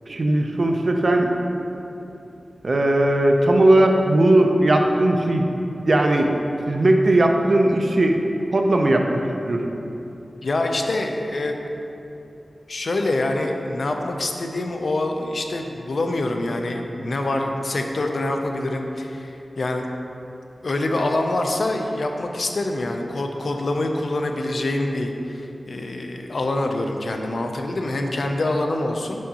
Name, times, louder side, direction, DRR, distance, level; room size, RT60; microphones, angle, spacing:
voice 1, 0.1-1.3 2.6-5.4 5.8-6.3 6.7-8.2 8.5-9.2 9.5-9.6, right 1 dB, 50° right, 3 dB, 0.4 m, -18 dB
voice 2, 10.4-11.5 12.7-19.8 20.6-29.2, left 2 dB, 65° left, 3 dB, 0.4 m, -25 dB
6.2 x 5.5 x 2.8 m, 2.9 s
wide cardioid pair, 100°, 0 cm